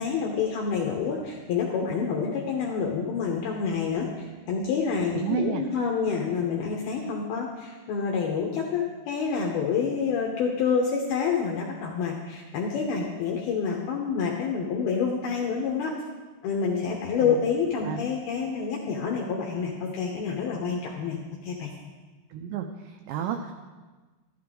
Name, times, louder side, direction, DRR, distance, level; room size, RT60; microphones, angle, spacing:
voice 1, 0.0-16.0 16.4-21.7, left 6 dB, 80° left, -1 dB, 2.3 m, -28 dB
voice 2, 5.2-5.6 17.2-17.4 17.9-18.0 22.3-23.5, right 9 dB, 90° right, 5 dB, 2.5 m, -31 dB
13.5 x 12.0 x 3.7 m, 1.3 s
omnidirectional pair, 5.7 m